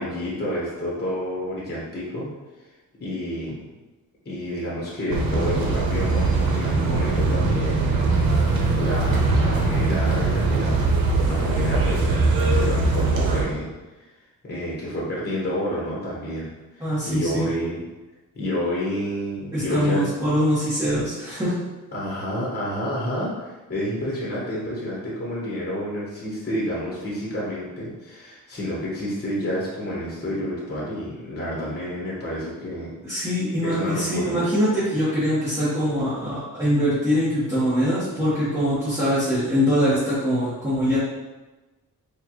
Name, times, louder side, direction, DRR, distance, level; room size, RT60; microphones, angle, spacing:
voice 1, 0.0-2.3 3.0-3.6 4.2-8.0 8.8-11.0 11.2-13.7 14.4-17.8 18.3-20.0 21.9-33.3 33.6-34.4, equal, 30° left, -5 dB, 1.3 m, -29 dB
sound 1, 5.1-13.4, right 3 dB, 90° right, 0.8 m, -21 dB
voice 2, 16.8-17.5 19.5-21.5 33.0-41.0, equal, 10° right, -13 dB, 1.4 m, -23 dB
4.4 x 2.5 x 3.1 m, 1.2 s
cardioid pair, 80°, 34 cm